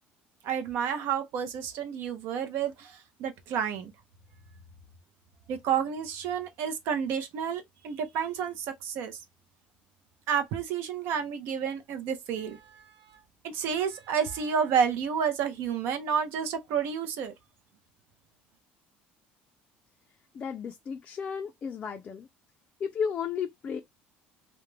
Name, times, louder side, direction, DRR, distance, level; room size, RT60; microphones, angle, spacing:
voice 1, 0.4-3.9 5.5-9.2 10.3-12.8 13.4-17.3, right 7 dB, 65° right, 0.6 m, -30 dB
voice 2, 20.3-22.3 22.8-23.8, left 6 dB, 30° left, 0.3 m, -33 dB
2.4 x 2.1 x 3.0 m
cardioid pair, 140°, 4 cm